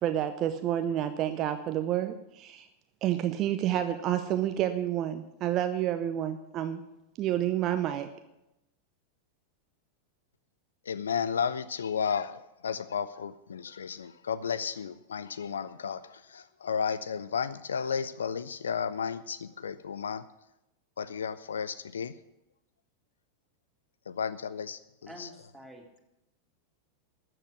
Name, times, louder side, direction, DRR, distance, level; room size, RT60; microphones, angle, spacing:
voice 1, 0.0-2.7 3.0-6.8 7.2-8.1, right 11 dB, 35° right, 9 dB, 0.8 m, -29 dB
voice 2, 10.9-20.3 21.0-22.2 24.1-24.8 25.2-25.3, left 6 dB, 70° left, 16 dB, 0.5 m, -33 dB
voice 3, 25.0-26.0, equal, ahead, -2 dB, 3.1 m, -48 dB
13.0 x 7.8 x 8.2 m, 0.90 s
figure-of-eight pair, 90°, 0 cm